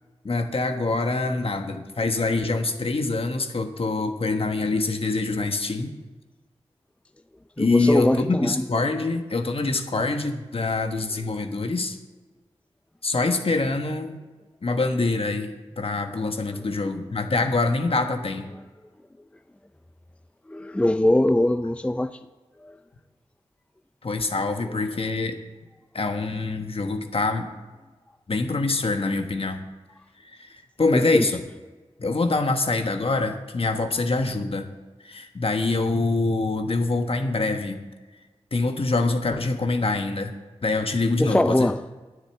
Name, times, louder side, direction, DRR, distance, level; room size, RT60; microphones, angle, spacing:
voice 1, 0.2-5.9 7.6-12.0 13.0-14.2 14.6-18.5 24.0-25.4 25.9-27.5 28.3-29.6 30.3-30.5 30.8-31.4 32.0-34.7 35.0-37.8 38.5-40.3 40.6-41.7, left 3 dB, 55° left, 1.3 m, -25 dB
voice 2, 7.6-8.6 20.5-22.1 22.6-22.8 30.9-31.3 41.2-41.8, left 1 dB, 10° left, 0.4 m, -22 dB
10.0 x 7.5 x 7.7 m
cardioid pair, 45°, 11 cm